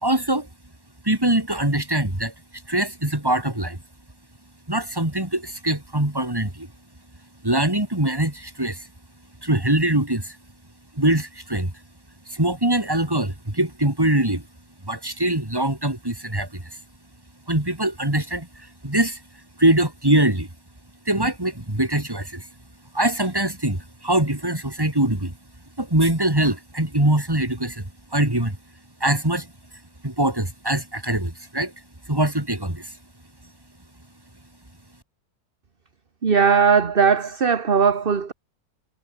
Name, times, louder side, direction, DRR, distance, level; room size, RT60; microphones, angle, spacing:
voice 1, 0.0-0.5 1.0-2.3 2.7-3.8 4.7-6.7 7.4-8.9 9.4-10.4 11.0-11.7 12.3-14.5 14.8-16.6 17.5-19.2 19.6-20.5 21.1-22.5 22.9-25.3 25.8-28.6 29.0-29.5 30.0-31.7 32.1-32.9, right 1 dB, 15° right, 3.5 m, -23 dB
voice 2, 36.2-38.3, right 6 dB, 40° right, 1.5 m, -18 dB
omnidirectional pair, 1.6 m